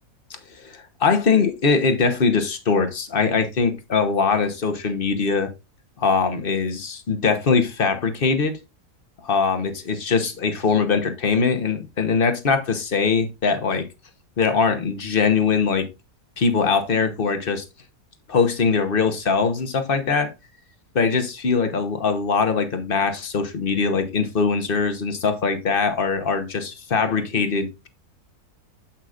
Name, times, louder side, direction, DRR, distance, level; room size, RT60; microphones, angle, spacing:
voice 1, 0.3-5.5 6.0-8.6 9.2-13.9 14.4-15.9 16.4-17.6 18.3-20.3 20.9-27.9, left 5 dB, 40° left, 1.1 m, -22 dB
8.5 x 8.0 x 2.5 m
omnidirectional pair, 1.7 m